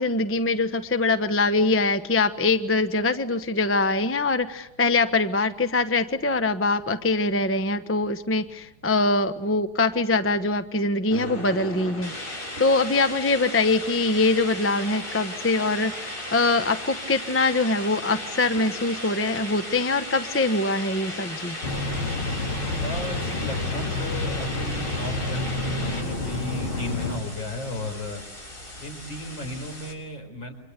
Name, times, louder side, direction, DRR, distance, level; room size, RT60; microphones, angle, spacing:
voice 1, 0.0-21.6, left 3 dB, 10° left, 9 dB, 0.6 m, -23 dB
sound 1, 11.1-29.9, left 1 dB, 40° left, 7.6 m, -36 dB
sound 2, 21.6-27.2, left 2 dB, 85° left, 5.3 m, -29 dB
voice 2, 22.8-28.2 28.8-30.5, left 2 dB, 65° left, 4 dB, 5.4 m, -35 dB
29.5 x 24.5 x 8.2 m, 0.85 s
omnidirectional pair, 2.2 m